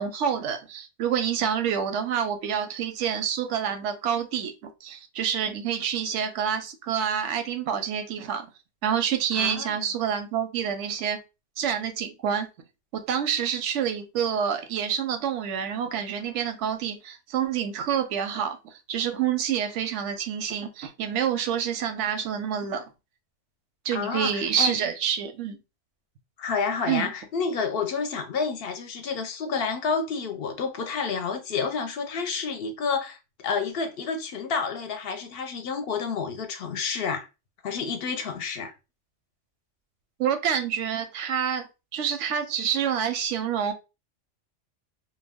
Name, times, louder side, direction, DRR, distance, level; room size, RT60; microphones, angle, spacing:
voice 1, 0.0-8.5 8.8-11.2 11.6-12.5 12.9-18.6 18.9-22.9 23.8-25.6 26.9-27.1 40.2-41.7 41.9-43.7, right 8 dB, 85° right, 0.9 m, -27 dB
voice 2, 9.3-9.8 23.9-24.8 26.4-37.3 37.6-38.7, left 5 dB, 65° left, 0.7 m, -29 dB
2.3 x 2.2 x 3.4 m
omnidirectional pair, 1.2 m